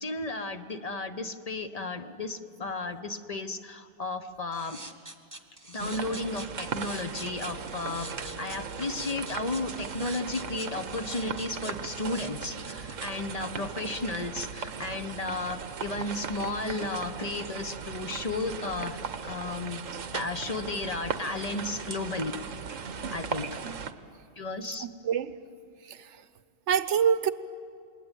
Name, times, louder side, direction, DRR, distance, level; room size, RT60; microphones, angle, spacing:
voice 1, 0.0-4.8 5.7-19.0 19.2-19.8 20.1-22.3 23.1-23.5 24.4-24.9, left 2 dB, 35° left, 8 dB, 1.0 m, -34 dB
sound 1, 4.5-12.9, right 2 dB, 15° right, 1.4 m, -45 dB
sound 2, 5.8-23.9, right 6 dB, 90° right, 1.4 m, -38 dB
voice 2, 24.8-25.3 25.8-26.2 26.7-27.3, right 8 dB, 70° right, 14 dB, 1.1 m, -26 dB
28.0 x 21.5 x 9.1 m, 2.3 s
omnidirectional pair, 1.3 m